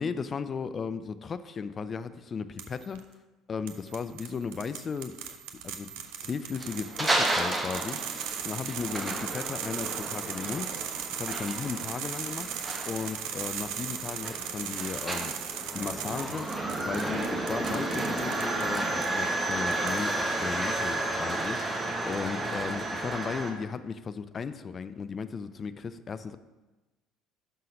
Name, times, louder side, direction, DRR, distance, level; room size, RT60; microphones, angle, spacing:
voice 1, 0.0-3.0 3.5-5.9 6.2-10.7 11.1-12.5 12.9-16.5 16.9-26.4, left 5 dB, 35° left, 12 dB, 0.4 m, -36 dB
sound 1, 2.6-3.0 3.7-19.1 19.5-20.3, right 9 dB, 60° right, 0.5 m, -38 dB
sound 2, 6.5-23.5, right 2 dB, 15° right, 1.0 m, -32 dB
5.6 x 5.5 x 5.1 m, 1.2 s
figure-of-eight pair, 60°, 0 cm